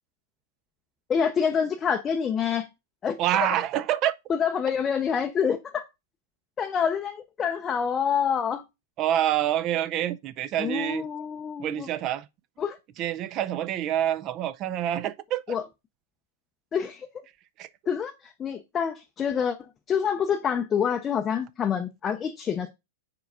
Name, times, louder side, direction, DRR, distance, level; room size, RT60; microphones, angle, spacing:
voice 1, 1.1-2.7 3.0-3.5 4.3-5.9 6.6-8.6 10.6-11.9 12.6-12.8 15.5-15.6 16.7-17.1 17.9-19.6 19.9-22.7, left 7 dB, 20° left, 0.6 m, -27 dB
voice 2, 3.2-4.1 9.0-11.1 11.6-12.3 13.0-15.6 17.6-17.7, right 12 dB, 30° right, 0.4 m, -27 dB
4.8 x 4.7 x 5.4 m
supercardioid pair, 160°, 0 cm